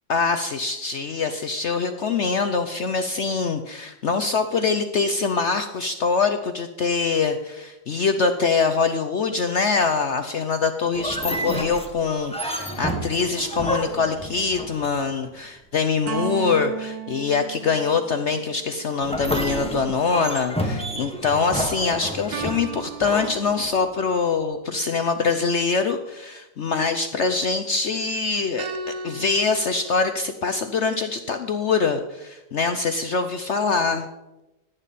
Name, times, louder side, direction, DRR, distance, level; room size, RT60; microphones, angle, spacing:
voice 1, 0.1-28.7 29.0-34.1, left 5 dB, 70° left, 8 dB, 0.6 m, -24 dB
sound 1, 10.9-15.2 19.0-24.1, equal, 5° left, 1.0 m, -30 dB
sound 2, 16.1-18.6 22.3-24.1 28.6-30.0, right 5 dB, 85° right, 1.7 m, -35 dB
16.5 x 9.0 x 4.1 m, 1.0 s
omnidirectional pair, 2.0 m